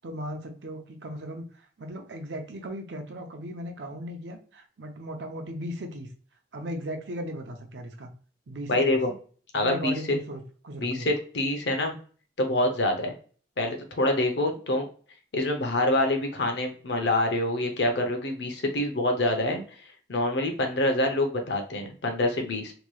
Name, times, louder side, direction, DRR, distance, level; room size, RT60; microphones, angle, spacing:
voice 1, 0.0-6.1 6.5-8.1 8.5-9.0 9.5-11.1, equal, 85° right, 5 dB, 0.6 m, -37 dB
voice 2, 8.7-9.1 9.5-9.9 10.8-12.0 12.4-13.1 13.6-14.9 15.3-19.6 20.1-22.7, left 1 dB, 80° left, 4 dB, 0.7 m, -26 dB
3.1 x 2.9 x 2.2 m, 0.42 s
head